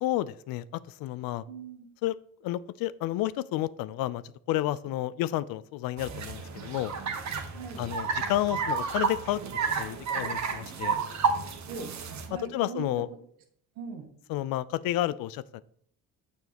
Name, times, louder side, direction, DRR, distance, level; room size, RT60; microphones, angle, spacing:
voice 1, 0.0-1.4 2.0-2.1 2.4-4.2 4.5-6.9 7.8-11.0 12.5-13.1 14.3-15.6, left 14 dB, 65° left, 18 dB, 0.5 m, -31 dB
voice 2, 1.5-1.9 7.5-7.9 11.7-11.9 12.2-12.9 13.7-14.1, right 5 dB, 90° right, 3 dB, 1.6 m, -40 dB
sound 1, 6.0-12.3, right 5 dB, 45° right, 1.2 m, -31 dB
7.0 x 6.2 x 2.9 m, 0.65 s
supercardioid pair, 85°, 38 cm